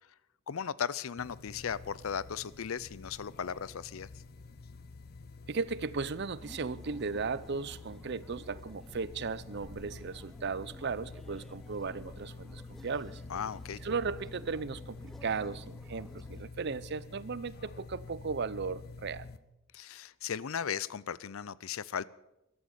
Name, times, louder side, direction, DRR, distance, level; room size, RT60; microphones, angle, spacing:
voice 1, 0.5-4.1 13.3-13.8 19.7-22.0, left 7 dB, 75° left, 0.5 m, -36 dB
sound 1, 1.2-19.4, left 3 dB, 45° left, 0.8 m, -48 dB
voice 2, 5.5-13.2 13.8-19.3, right 4 dB, 50° right, 0.6 m, -36 dB
sound 2, 6.4-16.4, equal, ahead, 0.4 m, -54 dB
14.5 x 12.0 x 7.1 m
head